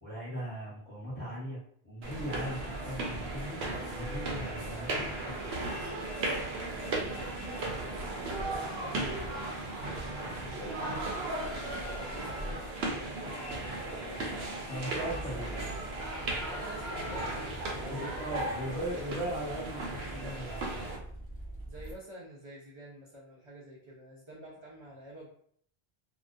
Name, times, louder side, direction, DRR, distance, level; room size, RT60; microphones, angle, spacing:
voice 1, 0.0-3.6 3.9-5.3 14.1-14.4 14.6-15.7 17.9-20.8, right 1 dB, 10° left, -8 dB, 1.0 m, -39 dB
sound 1, 2.0-21.0, right 2 dB, 80° right, 0.8 m, -36 dB
voice 2, 6.7-9.7 10.3-14.3 15.3-15.8 16.4-19.3 21.7-25.3, equal, 45° right, -5 dB, 0.4 m, -49 dB
sound 2, 7.5-7.7 11.1-12.8 15.7-17.6, left 2 dB, 80° left, 0.8 m, -48 dB
sound 3, 15.1-22.0, right 1 dB, 25° left, 0.6 m, -45 dB
2.3 x 2.1 x 2.5 m, 0.63 s
omnidirectional pair, 1.0 m